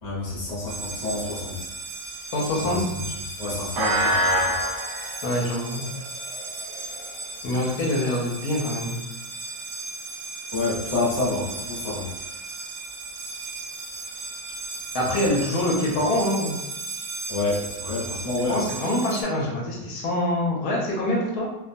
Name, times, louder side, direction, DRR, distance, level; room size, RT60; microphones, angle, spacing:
voice 1, 0.0-1.6 2.6-3.0 3.4-4.5 10.5-12.1 17.3-18.6, left 2 dB, 35° left, -7 dB, 0.8 m, -28 dB
sound 1, 0.7-19.2, right 1 dB, 65° right, 0.8 m, -32 dB
voice 2, 2.3-2.9 5.2-5.8 7.4-9.0 14.9-16.6 18.5-21.5, left 1 dB, 80° left, -3 dB, 1.1 m, -25 dB
2.6 x 2.2 x 2.5 m, 0.96 s
omnidirectional pair, 1.7 m